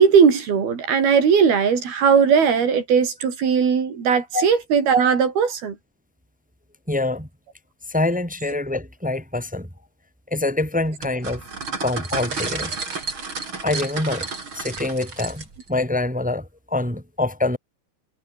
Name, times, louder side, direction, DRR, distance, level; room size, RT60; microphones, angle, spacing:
voice 1, 0.0-5.8, right 6 dB, 85° right, 6.1 m, -18 dB
voice 2, 6.9-7.3 7.9-9.7 10.3-11.4 11.8-12.8 13.6-14.3 14.5-17.6, left 2 dB, ahead, 2.9 m, -25 dB
sound 1, 11.0-15.7, right 4 dB, 35° right, 4.4 m, -31 dB
omnidirectional pair, 4.3 m